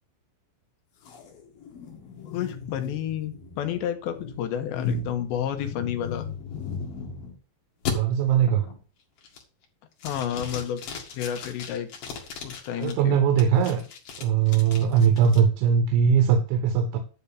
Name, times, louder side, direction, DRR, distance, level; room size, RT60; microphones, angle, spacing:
sound 1, 1.0-7.4 7.9-8.0 8.5-8.8 9.2-9.6 10.0-12.9 13.4-15.4, left 5 dB, 60° left, 3.6 m, -36 dB
voice 1, 2.3-6.3 10.0-10.9 11.2-11.9 12.4-13.2 13.5-13.8, left 10 dB, 75° left, 6 dB, 3.5 m, -31 dB
voice 2, 7.9-8.7 12.8-13.8 14.2-17.0, right 7 dB, 90° right, 6 dB, 3.5 m, -21 dB
11.5 x 4.2 x 7.1 m, 0.36 s
omnidirectional pair, 5.2 m